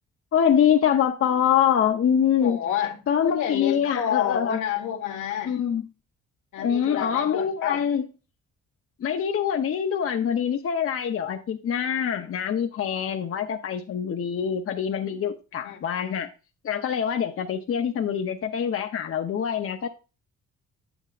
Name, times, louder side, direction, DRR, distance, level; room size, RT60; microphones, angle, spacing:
voice 1, 0.3-2.6 3.1-4.6 5.4-5.8 6.6-8.1 9.0-16.3 16.6-19.9, left 8 dB, 50° left, 0.7 m, -24 dB
voice 2, 2.4-5.6 6.5-7.8 15.6-15.8, left 10 dB, 80° left, 1.5 m, -29 dB
7.9 x 7.9 x 2.4 m
cardioid pair, 90°, 30 cm